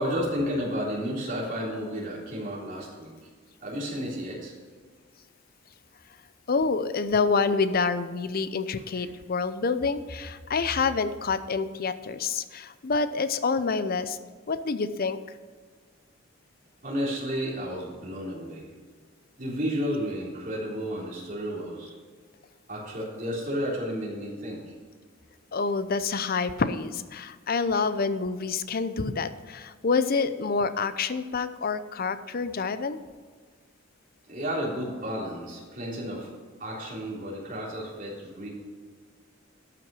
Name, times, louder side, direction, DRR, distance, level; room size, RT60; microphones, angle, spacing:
voice 1, 0.0-3.1 3.6-4.5 8.9-9.0 16.8-18.7 19.4-21.9 22.7-24.6 34.3-36.3 36.6-38.5, equal, 45° right, -4 dB, 3.5 m, -32 dB
voice 2, 6.5-14.2 14.5-15.2 25.5-33.0, left 4 dB, 50° left, 12 dB, 0.6 m, -27 dB
12.0 x 5.9 x 6.2 m, 1.5 s
head